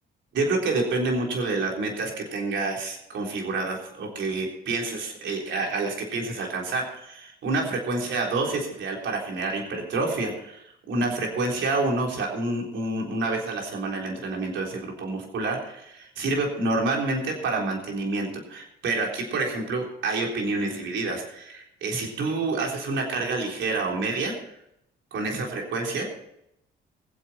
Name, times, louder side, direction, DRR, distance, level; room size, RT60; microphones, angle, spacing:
voice 1, 0.3-24.4 25.1-26.0, right 3 dB, 70° right, 0 dB, 3.8 m, -28 dB
21.5 x 8.1 x 4.4 m, 0.78 s
cardioid pair, 90°, 20 cm